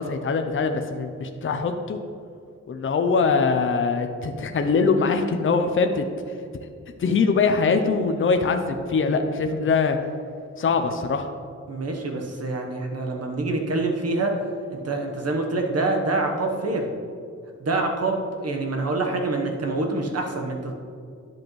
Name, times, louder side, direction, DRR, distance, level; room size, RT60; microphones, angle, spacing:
voice 1, 0.0-2.0 2.7-6.0 7.0-10.0 10.6-11.3, left 4 dB, 45° left, 6 dB, 0.5 m, -22 dB
voice 2, 11.7-14.3 14.7-16.9 17.6-20.7, right 2 dB, 55° right, 2 dB, 1.1 m, -26 dB
10.5 x 7.5 x 3.1 m, 2.3 s
wide cardioid pair, 170°, 29 cm